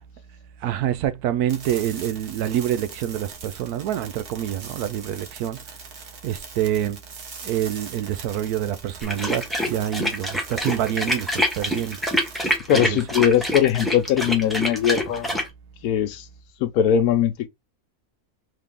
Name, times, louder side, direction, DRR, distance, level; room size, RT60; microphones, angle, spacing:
voice 1, 0.6-5.6 6.2-7.0 7.4-12.0 12.9-13.0, right 11 dB, 80° right, 1.1 m, -26 dB
sound 1, 1.5-12.6, right 5 dB, 50° right, 1.2 m, -41 dB
sound 2, 9.0-15.5, equal, ahead, 1.0 m, -26 dB
voice 2, 12.7-15.4 15.8-16.3 16.6-17.5, left 9 dB, 75° left, 1.1 m, -20 dB
3.7 x 3.3 x 3.5 m
omnidirectional pair, 1.6 m